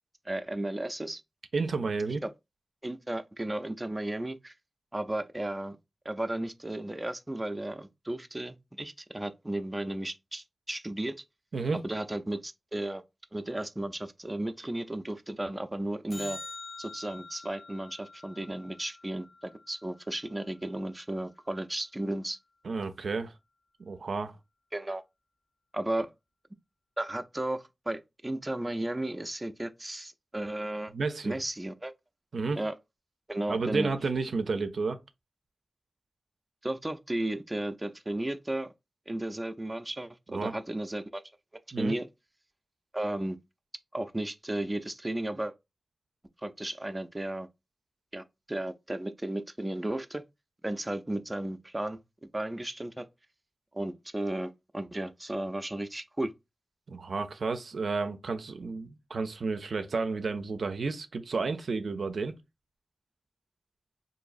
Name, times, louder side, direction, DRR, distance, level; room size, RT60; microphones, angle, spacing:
voice 1, 0.3-1.2 2.2-2.3 2.8-4.5 4.9-5.8 6.1-11.2 11.7-13.0 13.3-16.4 16.8-22.4 24.7-25.0 25.7-26.1 27.0-30.9 31.2-31.9 32.6-32.7 33.3-33.9 36.6-38.7 39.1-41.2 41.8-42.1 42.9-43.4 43.9-45.5 46.4-47.5 48.1-50.2 50.6-52.0 52.3-53.1 53.7-56.3, right 1 dB, 20° right, 0.4 m, -34 dB
voice 2, 1.5-2.2 11.5-11.8 22.6-23.3 23.8-24.4 30.9-31.4 32.3-32.6 33.5-35.0 40.3-40.6 41.7-42.0 56.9-62.3, right 4 dB, 90° right, 0.4 m, -31 dB
sound 1, 16.1-20.6 27.1-27.2, left 3 dB, 35° left, 0.7 m, -46 dB
3.8 x 2.6 x 2.4 m
wide cardioid pair, 60°, 0 cm